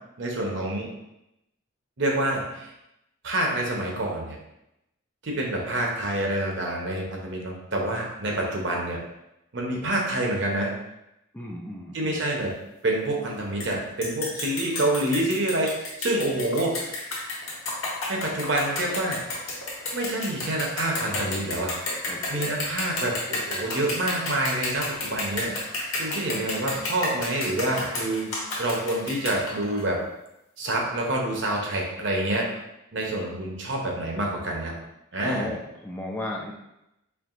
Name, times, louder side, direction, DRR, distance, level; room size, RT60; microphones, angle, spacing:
voice 1, 0.2-0.9 2.0-2.7 3.2-4.4 5.2-9.0 9.5-10.7 11.9-12.5 12.8-15.7 16.0-17.1 18.1-19.2 19.9-21.7 22.3-25.5 26.0-28.3 28.6-30.0 30.6-32.5 32.9-34.8 35.1-35.5, right 1 dB, 60° right, 0 dB, 0.8 m, -27 dB
voice 2, 11.3-12.2 22.1-22.6 35.2-36.5, left 1 dB, 10° left, -2 dB, 0.4 m, -35 dB
sound 1, 13.6-13.7 14.0-29.8, left 2 dB, 85° left, 1.2 m, -31 dB
4.6 x 3.1 x 2.5 m, 0.86 s
head